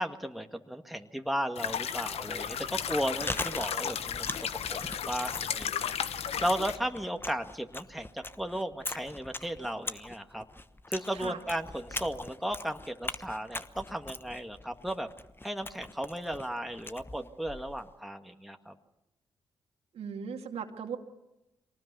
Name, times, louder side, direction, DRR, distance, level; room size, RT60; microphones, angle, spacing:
voice 1, 0.0-4.8 5.1-5.7 6.1-10.4 10.9-15.1 15.4-18.7, equal, ahead, 5 dB, 1.9 m, -35 dB
sound 1, 1.6-6.8, left 8 dB, 70° left, 1.0 m, -34 dB
Chewing mastication, 3.0-17.9, left 2 dB, 20° left, 1.2 m, -42 dB
voice 2, 19.9-21.0, right 6 dB, 70° right, 3 dB, 2.4 m, -38 dB
23.5 x 19.0 x 6.9 m, 0.94 s
hypercardioid pair, 40°, 11 cm